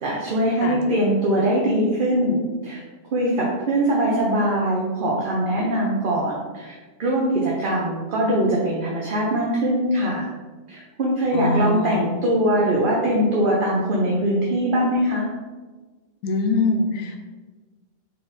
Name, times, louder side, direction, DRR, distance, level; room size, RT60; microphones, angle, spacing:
voice 1, 0.0-2.8 3.1-10.3 10.7-15.3, right 1 dB, 50° right, -3 dB, 0.7 m, -22 dB
voice 2, 11.3-12.0 16.2-17.2, left 3 dB, 85° left, 4 dB, 1.0 m, -23 dB
3.9 x 3.3 x 3.9 m, 1.3 s
omnidirectional pair, 1.4 m